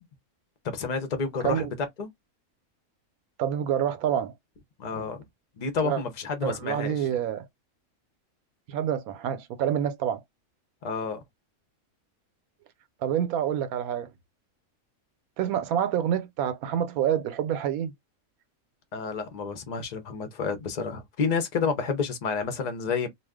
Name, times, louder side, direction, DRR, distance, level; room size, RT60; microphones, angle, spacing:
voice 1, 0.7-2.1 4.8-5.2 5.6-7.0 10.8-11.2 18.9-23.1, left 5 dB, 40° left, 0.6 m, -30 dB
voice 2, 3.4-4.3 5.8-6.0 6.4-7.5 8.7-10.2 13.0-14.1 15.4-17.9, right 9 dB, 85° right, 1.1 m, -27 dB
2.5 x 2.3 x 3.4 m
omnidirectional pair, 1.5 m